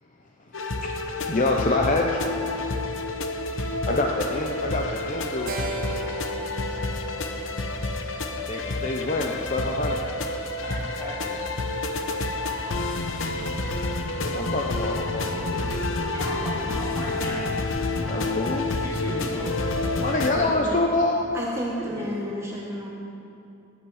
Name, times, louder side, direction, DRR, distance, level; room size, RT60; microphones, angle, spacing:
sound 1, 0.5-20.3, left 2 dB, 80° left, 0.9 m, -29 dB
voice 1, 1.3-2.2 3.9-5.6 8.5-10.0 14.2-16.1 18.1-18.6 20.0-21.2, left 2 dB, 40° left, 1 dB, 0.7 m, -26 dB
Keyboard (musical), 5.5-9.9, equal, 45° right, 0.8 m, -38 dB
voice 2, 10.6-11.6 12.7-12.9 16.1-17.6 18.8-19.5 21.7-22.1, equal, 15° left, -7 dB, 3.3 m, -37 dB
voice 3, 20.3-20.7 21.3-22.9, equal, 15° right, -3 dB, 1.2 m, -31 dB
18.5 x 8.9 x 4.9 m, 2.7 s
head